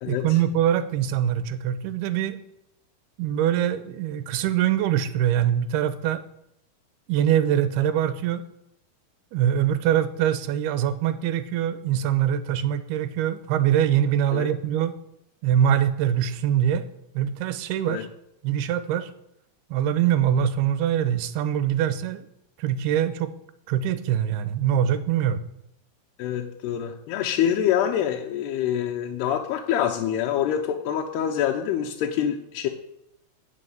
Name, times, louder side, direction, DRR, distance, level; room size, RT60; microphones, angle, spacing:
voice 1, 0.1-2.4 3.2-6.2 7.1-8.5 9.3-15.0 15.4-16.9 17.1-18.1 18.4-19.1 19.7-22.3 22.6-23.3 23.7-25.4, right 10 dB, 85° right, 12 dB, 2.8 m, -23 dB
voice 2, 26.2-32.7, left 9 dB, 85° left, 2 dB, 2.9 m, -26 dB
14.5 x 6.0 x 9.3 m, 0.80 s
omnidirectional pair, 4.6 m